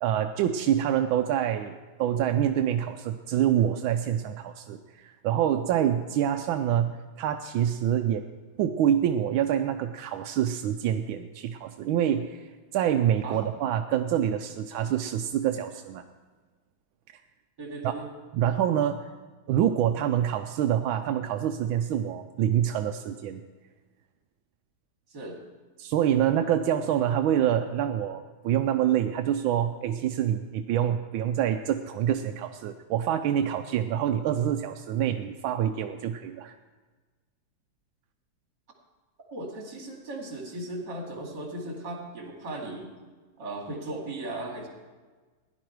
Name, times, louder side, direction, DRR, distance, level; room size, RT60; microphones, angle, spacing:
voice 1, 0.0-8.3 8.6-16.0 17.8-17.9 18.3-19.1 19.5-23.4 25.8-36.5, right 10 dB, 90° right, 6 dB, 1.4 m, -26 dB
voice 2, 17.6-18.1 25.1-25.4 39.3-42.9 43.4-44.7, right 2 dB, 60° right, 0 dB, 3.0 m, -37 dB
16.0 x 11.0 x 4.6 m, 1.4 s
omnidirectional pair, 2.1 m